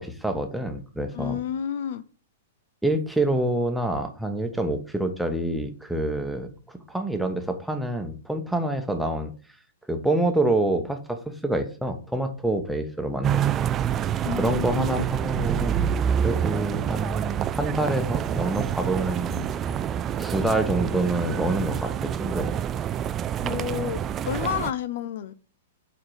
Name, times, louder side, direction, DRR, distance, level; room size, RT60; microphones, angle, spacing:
voice 1, 0.0-1.4 2.8-9.3 9.9-13.4 13.9-15.8 16.1-19.8 20.2-22.5, right 1 dB, ahead, 5 dB, 1.1 m, -27 dB
voice 2, 1.1-2.0 14.2-15.0 23.4-25.3, left 9 dB, 55° left, 16 dB, 0.5 m, -30 dB
sound 1, 13.2-24.7, right 9 dB, 25° right, 0.4 m, -27 dB
8.5 x 3.9 x 4.8 m, 0.39 s
figure-of-eight pair, 105°, 0 cm